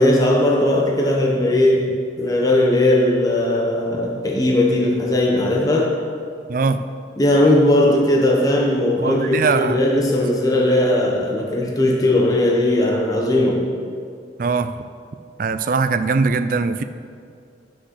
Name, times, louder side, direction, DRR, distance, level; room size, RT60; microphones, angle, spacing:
voice 1, 0.0-1.9 2.2-6.0 7.2-13.7, left 1 dB, 20° left, -1 dB, 0.9 m, -18 dB
voice 2, 6.5-6.8 9.0-9.8 14.4-14.8 15.4-16.8, right 4 dB, 45° right, 10 dB, 0.4 m, -21 dB
9.9 x 6.3 x 6.3 m, 2.3 s
head